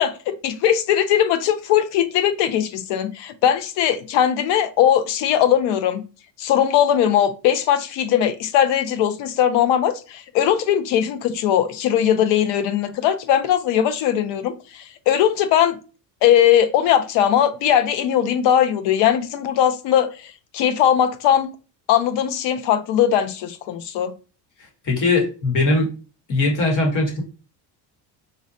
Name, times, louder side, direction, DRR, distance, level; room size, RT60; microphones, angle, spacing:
voice 1, 0.0-6.0 6.4-15.8 16.2-21.5 21.9-24.1, left 10 dB, 85° left, 0.6 m, -19 dB
voice 2, 24.8-25.9 26.3-27.2, left 2 dB, 45° left, 1.0 m, -20 dB
3.9 x 2.1 x 2.5 m
cardioid pair, 165°, 42 cm